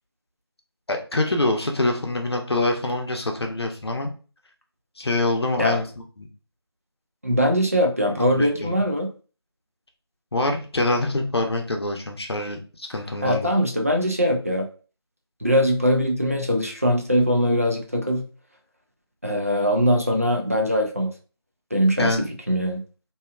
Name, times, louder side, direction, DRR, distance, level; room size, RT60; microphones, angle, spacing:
voice 1, 0.9-4.1 5.0-5.9 6.2-6.3 8.2-8.8 10.3-13.5 22.0-22.3, left 2 dB, 70° left, 2 dB, 0.7 m, -25 dB
voice 2, 7.2-9.1 13.2-14.7 15.4-18.2 19.2-21.1 21.7-22.8, equal, 35° right, 1 dB, 0.4 m, -21 dB
2.7 x 2.3 x 2.3 m, 0.36 s
figure-of-eight pair, 170°, 14 cm